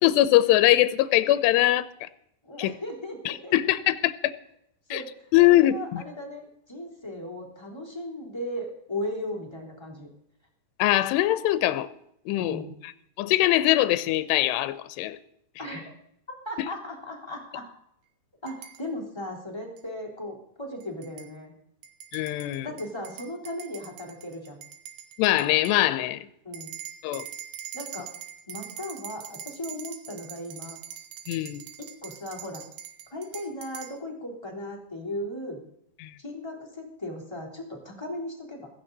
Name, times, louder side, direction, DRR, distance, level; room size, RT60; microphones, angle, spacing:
voice 1, 0.0-2.1 2.6-2.7 3.3-4.3 4.9-5.0 5.3-6.0 10.8-11.9 12.3-12.6 13.2-15.2 16.6-16.7 22.1-22.7 25.2-26.3 27.0-27.3 31.3-31.6 36.0-36.1, left 15 dB, 85° left, 2.8 m, -22 dB
voice 2, 2.4-3.5 4.9-5.1 5.5-10.1 12.4-12.7 15.6-15.9 16.4-17.6 18.4-21.5 22.6-24.6 26.4-26.7 27.7-28.1 28.5-30.8 31.8-32.6 33.1-35.6 36.2-38.7, left 1 dB, 5° left, 2.8 m, -37 dB
sound 1, 18.5-18.8 19.8-19.9 20.8-21.3 21.8-25.8 26.5-34.0, right 10 dB, 75° right, 3.2 m, -43 dB
16.0 x 15.0 x 4.0 m
omnidirectional pair, 4.8 m